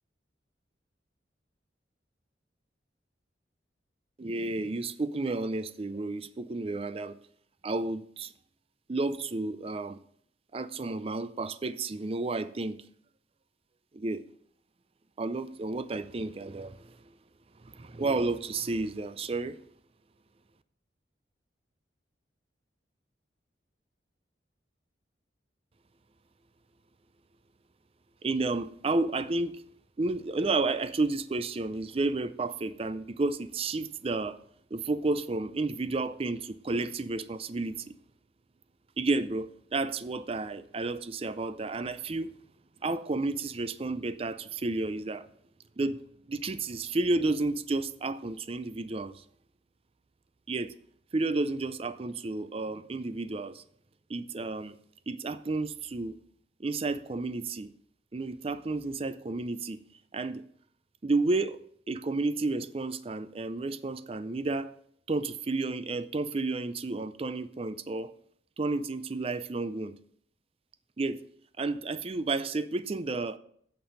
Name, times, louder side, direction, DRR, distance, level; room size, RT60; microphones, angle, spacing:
voice 1, 4.2-7.2 7.6-8.3 8.9-10.0 10.5-12.8 13.9-14.2 15.2-17.0 17.6-19.6 28.2-29.6 30.0-34.4 34.7-37.9 39.0-42.3 42.8-45.3 45.8-46.0 46.3-49.2 50.5-50.7 51.1-53.6 54.1-54.8 55.1-56.2 56.6-57.7 58.1-59.8 60.1-60.4 61.0-61.6 61.9-64.7 65.1-68.1 68.6-69.9 71.0-71.2 71.6-73.4, right 3 dB, 30° right, 0.4 m, -31 dB
8.7 x 5.4 x 6.6 m
head